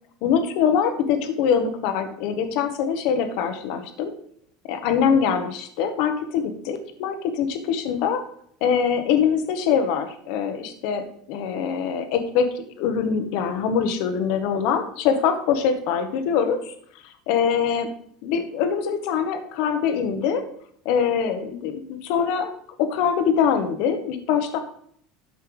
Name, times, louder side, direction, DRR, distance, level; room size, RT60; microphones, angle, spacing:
voice 1, 0.2-4.1 4.7-8.2 8.6-16.7 17.3-17.9 18.2-20.4 20.8-22.5 22.8-24.6, left 7 dB, 60° left, 7 dB, 1.3 m, -23 dB
12.5 x 5.5 x 3.9 m, 0.63 s
cardioid pair, 155°, 0 cm